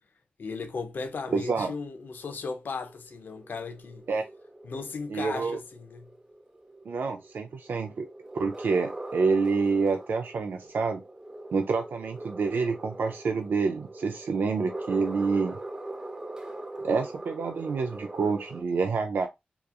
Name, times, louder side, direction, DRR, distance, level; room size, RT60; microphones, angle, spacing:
voice 1, 0.4-4.1 4.6-6.1, left 4 dB, 70° left, 0.4 m, -36 dB
voice 2, 1.3-1.7 4.1-4.2 5.1-5.6 6.9-8.1 8.3-11.0 11.5-15.6 16.8-19.3, right 4 dB, 70° right, 0.3 m, -27 dB
sound 1, 1.4-18.6, right 2 dB, 20° right, 0.5 m, -42 dB
2.8 x 2.3 x 2.3 m
wide cardioid pair, 90°, 3 cm